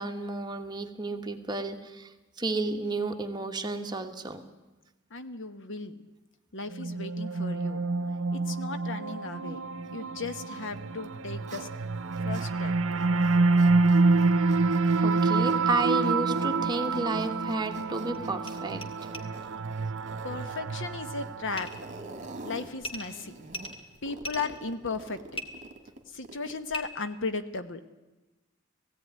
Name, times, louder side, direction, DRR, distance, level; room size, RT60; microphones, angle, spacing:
voice 1, 0.0-4.4 15.0-19.1, right 2 dB, 20° right, 4 dB, 1.4 m, -32 dB
voice 2, 5.1-5.9 6.5-7.9 8.3-9.6 9.9-11.7 12.2-12.7 20.2-21.7 22.4-23.4 24.0-25.4 26.1-27.9, left 4 dB, 60° left, 10 dB, 1.1 m, -36 dB
sound 1, 6.7-22.0, right 3 dB, 65° right, 0.8 m, -27 dB
Zipper (clothing), 10.9-12.5 12.9-26.7, right 2 dB, 35° right, 1.9 m, -47 dB
sound 2, 18.1-18.2 18.4-18.5 18.8-18.9 19.1-19.2 21.6-21.8 22.8-23.1 23.5-24.5 25.3-25.4 26.7-26.8, left 1 dB, 25° left, 1.9 m, -37 dB
17.5 x 16.0 x 9.4 m, 1.1 s
head